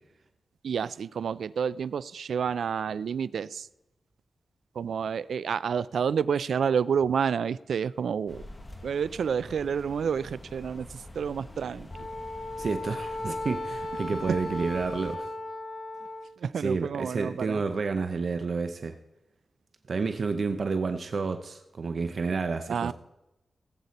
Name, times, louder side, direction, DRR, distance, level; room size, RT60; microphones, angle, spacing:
voice 1, 0.6-3.7 4.8-8.4 8.8-10.9 11.1-11.9 14.3-14.4 16.4-17.6 22.7-22.9, right 7 dB, 85° right, 18 dB, 0.3 m, -29 dB
sound 1, 8.3-15.2, left 2 dB, 25° left, 1.2 m, -46 dB
Wind instrument woodwind instrument, 11.9-16.3, left 1 dB, 70° left, 5.7 m, -36 dB
voice 2, 12.6-15.3 16.6-18.9 19.9-22.9, right 4 dB, 55° right, 7 dB, 0.6 m, -30 dB
18.5 x 8.1 x 4.2 m, 0.94 s
wide cardioid pair, 130°, 0 cm